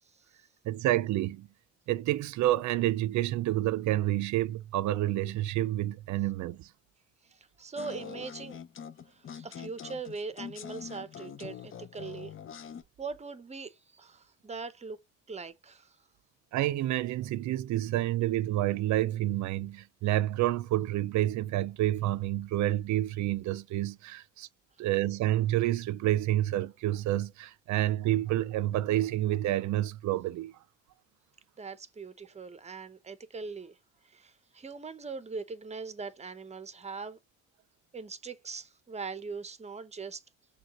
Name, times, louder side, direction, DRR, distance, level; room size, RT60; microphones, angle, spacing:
voice 1, 0.7-1.5 1.9-6.7 16.5-24.5 24.8-30.5, right 14 dB, 70° right, 0.5 m, -29 dB
voice 2, 7.2-8.6 9.1-12.3 13.0-15.0 15.3-16.0 31.6-33.8 34.0-37.2 37.9-40.2, right 4 dB, 20° right, 0.7 m, -41 dB
sound 1, 7.8-12.8, left 8 dB, 45° left, 0.6 m, -44 dB
6.3 x 2.4 x 2.9 m
cardioid pair, 90°, 30 cm